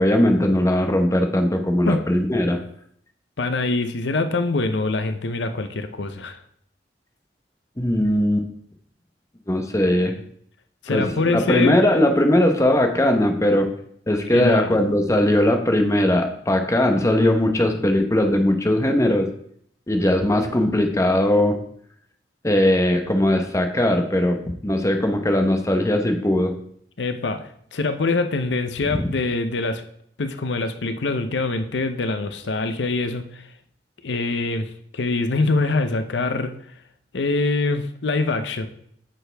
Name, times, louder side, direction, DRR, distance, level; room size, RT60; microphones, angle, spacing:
voice 1, 0.0-2.6 7.8-8.5 9.5-10.1 10.9-13.7 14.1-19.3 19.9-21.6 22.4-26.5 28.9-29.1, left 1 dB, 15° left, 5 dB, 0.9 m, -19 dB
voice 2, 3.4-6.4 10.8-11.8 14.3-14.8 27.0-29.8 30.2-33.5 34.0-36.5 37.1-38.7, left 3 dB, 80° left, 9 dB, 0.7 m, -24 dB
9.2 x 6.6 x 3.4 m, 0.66 s
head